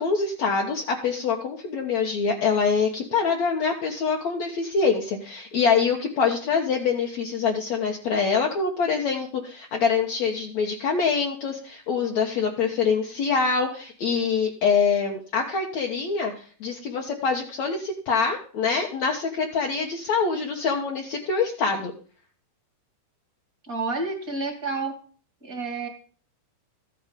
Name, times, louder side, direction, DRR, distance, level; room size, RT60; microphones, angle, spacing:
voice 1, 0.0-21.9, left 5 dB, 70° left, 0 dB, 1.6 m, -25 dB
voice 2, 23.6-25.0 25.4-25.9, right 3 dB, 30° right, 6 dB, 1.8 m, -29 dB
14.5 x 10.5 x 5.3 m, 0.41 s
omnidirectional pair, 5.5 m